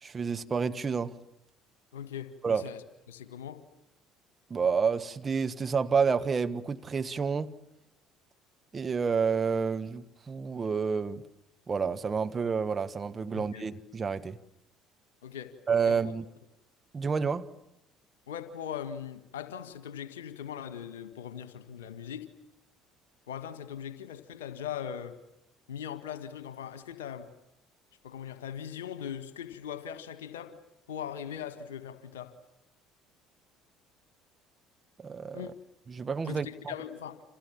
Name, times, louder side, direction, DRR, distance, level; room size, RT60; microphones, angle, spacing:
voice 1, 0.0-1.1 2.4-2.6 4.5-7.5 8.7-11.2 11.7-14.4 15.7-16.2 16.9-17.5 35.0-35.5 35.9-36.5, right 5 dB, 30° right, 1.4 m, -29 dB
voice 2, 1.9-2.8 3.1-3.6 13.3-13.6 15.2-15.6 15.8-16.1 18.3-22.3 23.3-25.2 25.7-27.3 28.0-30.6 30.9-32.4 35.3-35.5 36.2-37.2, left 9 dB, 75° left, 1.8 m, -40 dB
30.0 x 27.0 x 7.3 m
figure-of-eight pair, 55°, 0 cm